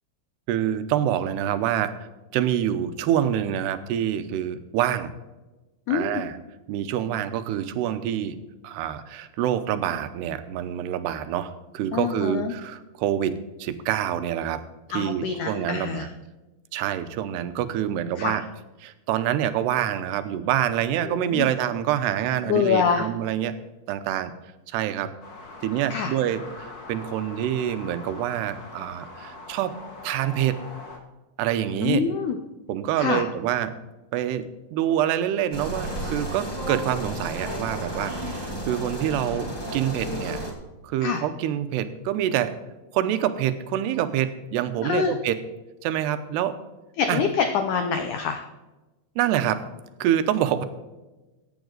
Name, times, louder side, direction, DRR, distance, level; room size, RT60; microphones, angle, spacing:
voice 1, 0.5-1.9 2.3-5.1 5.9-6.4 6.7-8.4 8.6-14.6 14.9-16.1 16.7-18.4 18.8-23.5 23.9-24.3 24.7-25.1 25.6-29.8 30.0-30.6 31.4-32.0 32.7-33.8 34.1-34.5 34.7-40.4 40.8-42.6 42.9-45.4 45.8-46.6 47.1-47.2 49.2-49.7 50.0-50.7, right 11 dB, 85° right, 11 dB, 2.9 m, -26 dB
voice 2, 5.9-6.2 11.9-12.5 14.9-16.1 18.2-18.4 21.1-21.5 22.5-23.1 25.9-26.1 31.8-32.4 33.0-33.3 41.0-41.2 44.8-45.1 47.0-48.4, left 6 dB, 80° left, 6 dB, 1.7 m, -25 dB
sound 1, 25.2-31.0, left 2 dB, 60° left, 0.9 m, -42 dB
sound 2, 35.5-40.5, equal, 25° left, 0.5 m, -32 dB
15.5 x 9.0 x 4.0 m, 1.1 s
omnidirectional pair, 4.7 m